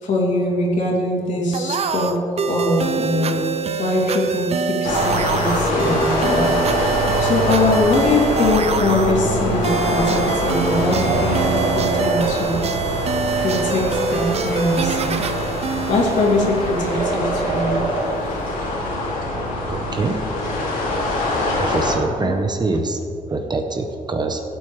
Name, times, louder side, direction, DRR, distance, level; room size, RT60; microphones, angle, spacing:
voice 1, 0.0-2.1 2.4-3.3 3.8-12.6 13.4-15.2 15.9-17.8 20.7-20.8 22.2-22.4, left 2 dB, 60° left, -4 dB, 3.0 m, -22 dB
sound 1, 1.5-17.0, right 6 dB, 45° right, 0.6 m, -25 dB
sound 2, 4.8-22.0, left 1 dB, 75° left, 2.5 m, -24 dB
sound 3, 8.3-8.5 8.8-8.9 9.7-12.7 13.4-13.5 14.1-14.2 15.2-15.3 15.5-18.3, right 3 dB, 80° right, 1.8 m, -28 dB
voice 2, 19.7-20.2 21.6-23.0 23.3-24.4, right 3 dB, 30° right, 5 dB, 0.9 m, -24 dB
16.0 x 8.6 x 3.3 m, 2.5 s
cardioid pair, 105°, 15 cm